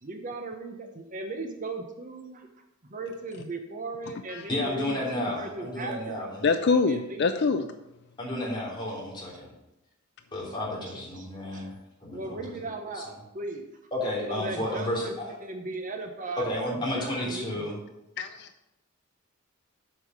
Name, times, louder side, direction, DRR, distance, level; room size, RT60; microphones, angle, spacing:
voice 1, 0.0-2.5 2.9-6.3 6.9-7.3 11.1-11.3 11.5-11.6 12.1-13.7 14.3-15.1 15.4-17.8, right 3 dB, 40° right, 4 dB, 0.9 m, -37 dB
voice 2, 4.5-6.5 8.2-9.5 10.3-11.7 12.0-12.6 12.9-13.0 13.9-15.3 16.4-17.7, left 1 dB, 20° left, -5 dB, 3.2 m, -32 dB
voice 3, 6.4-7.7 18.2-18.5, left 4 dB, 55° left, 8 dB, 0.4 m, -24 dB
8.2 x 5.6 x 6.5 m, 0.92 s
head